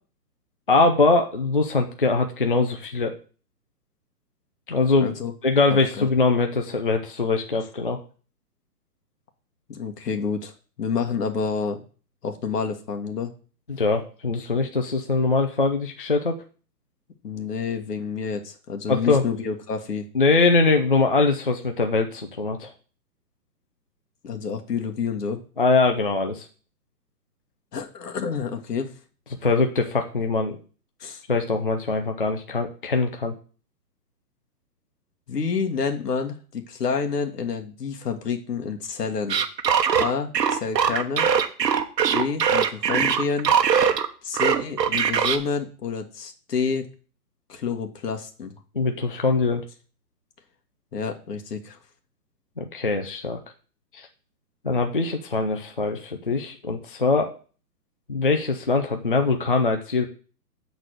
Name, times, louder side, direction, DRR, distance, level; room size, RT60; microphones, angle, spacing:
voice 1, 0.7-3.1 4.7-5.1 5.4-8.0 13.7-16.4 18.9-19.2 20.1-22.7 25.6-26.5 29.4-30.6 31.3-33.3 48.8-49.6 52.6-53.4 53.9-54.1 54.6-57.3 58.1-60.1, left 3 dB, 35° left, 4 dB, 0.4 m, -22 dB
voice 2, 5.0-5.3 5.7-6.1 9.7-11.8 12.2-13.3 17.2-20.1 24.2-25.4 27.7-29.0 31.0-31.2 35.3-39.4 40.0-41.3 42.1-43.5 44.2-46.9 47.5-48.5 50.9-51.8, left 5 dB, 70° left, 4 dB, 1.6 m, -29 dB
sound 1, 39.3-44.1 44.3-45.4, right 7 dB, 80° right, 1.1 m, -21 dB
7.5 x 4.0 x 6.5 m, 0.39 s
hypercardioid pair, 170°, 49 cm